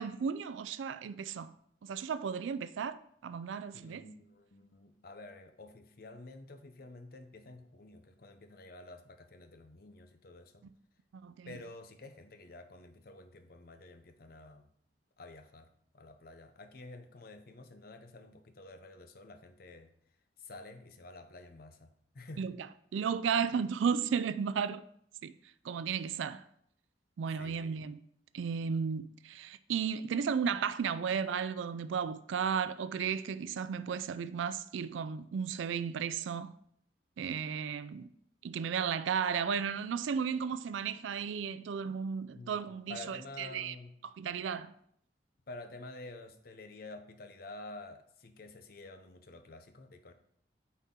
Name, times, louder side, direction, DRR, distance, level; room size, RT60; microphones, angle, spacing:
voice 1, 0.0-1.5 1.8-4.0 11.2-11.5 22.4-22.6 22.9-24.8 25.2-25.3 25.6-26.4 27.2-28.0 28.3-36.5 37.2-38.1 38.4-43.7 44.2-44.7, right 6 dB, 85° right, 0.4 m, -34 dB
voice 2, 3.7-10.6 11.5-14.7 15.2-15.7 15.9-19.9 20.4-22.5 27.4-27.7 42.3-43.9 45.5-50.1, left 2 dB, 50° left, 0.7 m, -50 dB
9.2 x 4.2 x 3.7 m
head